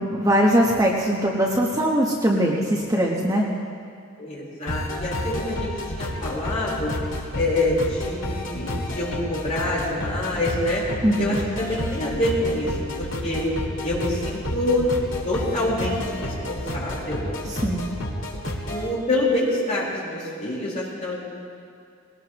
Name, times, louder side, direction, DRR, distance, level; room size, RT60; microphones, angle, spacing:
voice 1, 0.0-3.4 11.0-11.4 17.4-17.8, equal, 15° right, -2 dB, 1.1 m, -21 dB
voice 2, 4.2-6.9 7.3-10.8 11.2-13.5 13.8-14.9 15.2-17.2 18.7-21.2, left 1 dB, 35° left, -6 dB, 4.1 m, -26 dB
sound 1, 4.7-18.9, left 1 dB, 70° left, 2.0 m, -30 dB
20.5 x 18.0 x 3.0 m, 2.3 s
head